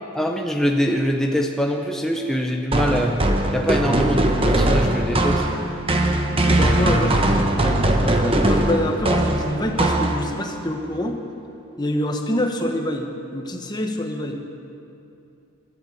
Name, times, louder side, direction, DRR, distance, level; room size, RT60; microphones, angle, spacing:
voice 1, 0.1-3.2 3.5-5.5, equal, ahead, 2 dB, 0.7 m, -23 dB
sound 1, 2.7-10.5, right 1 dB, 25° right, 0.9 m, -20 dB
voice 2, 6.5-11.2 11.8-14.3, left 1 dB, 20° left, 3 dB, 1.1 m, -26 dB
13.0 x 11.0 x 8.3 m, 2.7 s
head